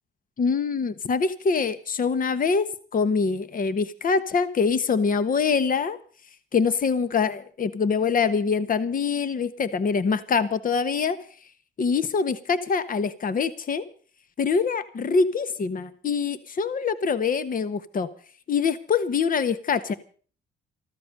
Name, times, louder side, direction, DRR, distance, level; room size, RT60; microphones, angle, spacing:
voice 1, 0.4-6.0 6.5-11.2 11.8-13.8 14.4-18.1 18.5-19.9, left 5 dB, 45° left, 14 dB, 1.3 m, -24 dB
14.5 x 13.5 x 6.6 m, 0.43 s
cardioid pair, 90°, 20 cm